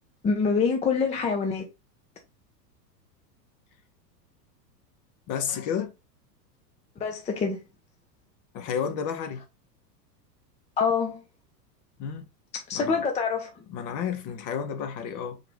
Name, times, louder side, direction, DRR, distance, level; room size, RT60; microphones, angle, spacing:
voice 1, 0.2-1.7 7.0-7.6 10.8-11.2 12.5-13.5, left 5 dB, 15° left, 0.5 m, -25 dB
voice 2, 5.3-5.9 8.5-9.4 12.0-12.2 12.7-13.0 13.7-15.4, left 7 dB, 40° left, 0.9 m, -31 dB
3.9 x 3.3 x 3.3 m
hypercardioid pair, 100°, 50 cm